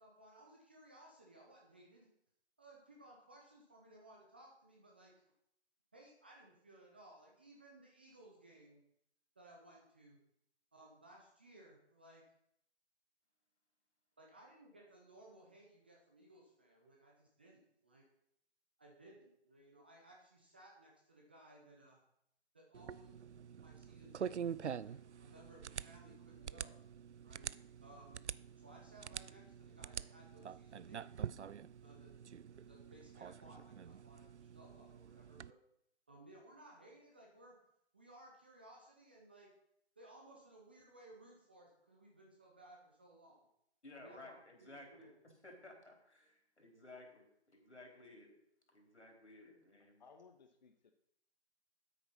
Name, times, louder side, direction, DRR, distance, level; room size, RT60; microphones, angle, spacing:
voice 1, 0.0-2.1 2.6-5.2 5.9-8.8 9.4-10.2 10.7-12.2 14.2-18.1 18.8-22.0 22.5-23.3 23.6-26.8 27.2-27.5 27.8-28.2 28.6-31.4 31.8-32.1 32.5-35.6 36.1-37.6 37.9-39.5 40.0-43.5 43.9-45.1, right 1 dB, 10° right, -1 dB, 0.5 m, -61 dB
sound 1, 22.7-35.5, right 8 dB, 85° right, 0.5 m, -46 dB
voice 2, 43.8-48.3 48.7-50.0, left 2 dB, 85° left, 1 dB, 4.1 m, -57 dB
voice 3, 50.0-50.9, left 5 dB, 40° left, 6 dB, 0.8 m, -61 dB
9.4 x 8.5 x 5.6 m, 0.75 s
figure-of-eight pair, 145°, 33 cm